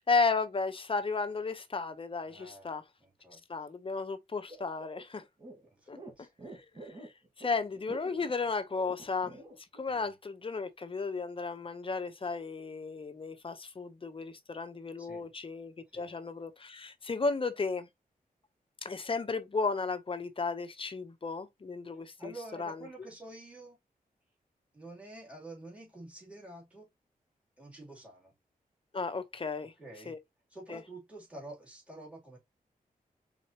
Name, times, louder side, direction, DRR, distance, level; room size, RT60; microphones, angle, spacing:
voice 1, 0.1-2.8 3.5-5.2 5.9-7.1 7.4-9.4 9.8-17.9 18.8-22.3 22.6-22.8 28.9-29.7 30.1-30.2 30.7-30.8, left 4 dB, 35° left, 0.8 m, -34 dB
voice 2, 2.3-3.4 5.7-6.3 9.9-10.1 15.0-15.3 15.9-16.1 22.2-23.8 24.7-26.9 27.6-28.3 29.8-30.1 30.5-32.4, right 2 dB, 10° right, 2.9 m, -49 dB
sound 1, 4.5-9.8, right 2 dB, 30° right, 2.0 m, -48 dB
4.5 x 4.0 x 2.8 m
wide cardioid pair, 115°, 15 cm